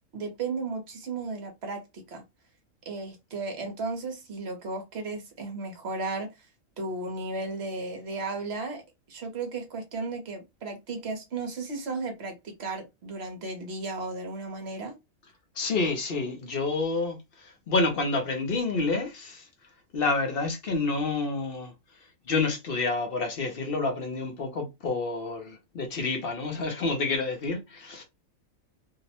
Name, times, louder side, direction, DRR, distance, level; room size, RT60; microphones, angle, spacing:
voice 1, 0.1-2.2 2.9-6.3 6.8-8.8 9.1-14.9, right 3 dB, 55° right, 0.9 m, -34 dB
voice 2, 15.6-19.5 19.9-21.7 22.3-28.0, left 3 dB, 55° left, 0.7 m, -28 dB
2.7 x 2.0 x 2.7 m
omnidirectional pair, 1.4 m